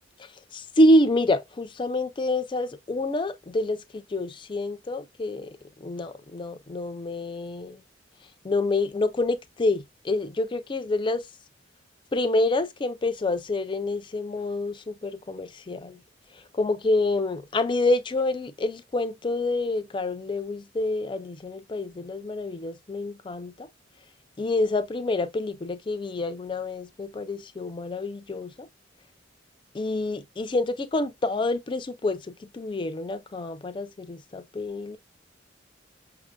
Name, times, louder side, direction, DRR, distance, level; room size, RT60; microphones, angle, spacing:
voice 1, 0.2-7.8 8.4-11.3 12.1-16.0 16.3-23.7 24.4-28.7 29.7-35.0, left 2 dB, 25° left, 0.4 m, -27 dB
5.8 x 2.5 x 2.2 m
head